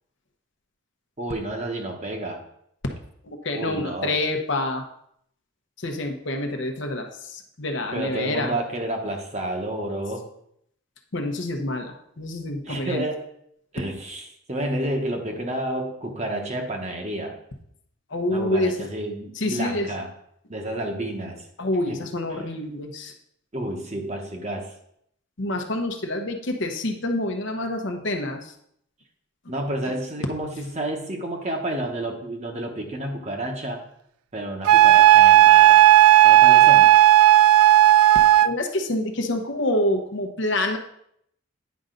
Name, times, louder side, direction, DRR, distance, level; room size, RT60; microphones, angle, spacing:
voice 1, 1.2-2.4 3.5-4.2 7.9-10.2 12.6-13.2 13.7-17.4 18.3-20.1 20.5-21.5 21.9-22.5 23.5-24.7 29.5-33.8 34.3-35.9 36.2-36.9, right 1 dB, 30° right, 2 dB, 1.1 m, -30 dB
voice 2, 3.2-4.8 5.8-7.1 7.3-8.5 11.1-13.0 18.1-18.7 19.4-19.9 21.6-23.1 25.4-28.5 38.4-40.8, left 1 dB, 60° left, 4 dB, 0.9 m, -27 dB
Wind instrument woodwind instrument, 34.7-38.5, right 13 dB, 90° right, 0.3 m, -13 dB
9.4 x 5.4 x 3.8 m, 0.72 s
head